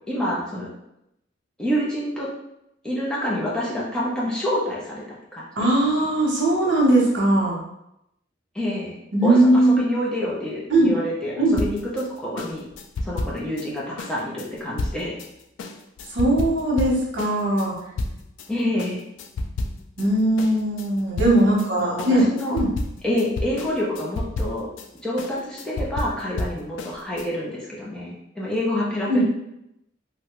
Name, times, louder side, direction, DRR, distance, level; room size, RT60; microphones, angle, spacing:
voice 1, 0.1-0.7 1.6-2.3 2.8-5.4 6.0-6.1 8.5-8.9 9.2-12.7 13.0-15.2 18.5-19.0 21.8-22.6 23.0-24.7 25.0-29.2, equal, 5° left, -6 dB, 0.6 m, -27 dB
voice 2, 5.6-7.6 9.1-9.8 10.7-10.9 11.4-11.5 16.1-17.7 20.0-22.2 22.5-22.7 29.1-29.2, right 1 dB, 70° right, -3 dB, 0.9 m, -19 dB
sound 1, 11.6-18.5 18.8-20.1 20.4-27.3, left 2 dB, 90° left, 0.3 m, -31 dB
2.9 x 2.2 x 3.0 m, 0.83 s
head